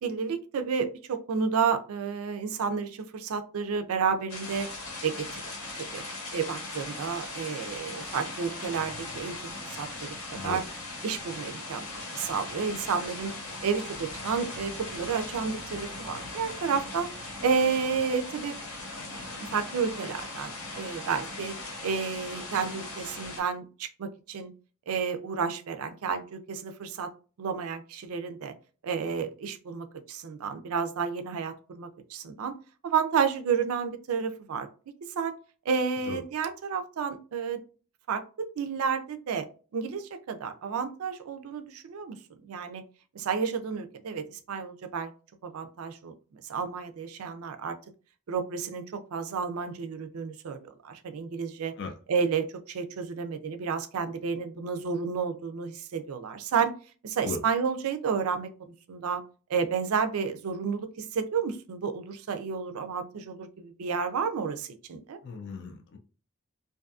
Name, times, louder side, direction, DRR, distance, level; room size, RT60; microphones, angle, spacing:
voice 1, 0.0-4.7 5.0-6.0 6.3-10.6 11.0-13.3 13.6-17.1 17.4-18.5 19.4-21.5 21.8-24.5 24.9-27.1 27.4-28.5 28.8-32.5 32.8-34.7 35.2-35.3 35.7-37.6 38.1-39.5 39.7-42.8 43.1-45.1 45.4-46.1 46.5-47.8 48.3-51.7 52.1-56.7 57.0-59.2 59.5-65.2, right 6 dB, 75° right, 0.4 m, -31 dB
sound 1, 4.3-23.4, left 2 dB, 85° left, 1.1 m, -39 dB
voice 2, 65.2-66.0, left 4 dB, 50° left, 0.4 m, -36 dB
2.6 x 2.4 x 2.3 m
head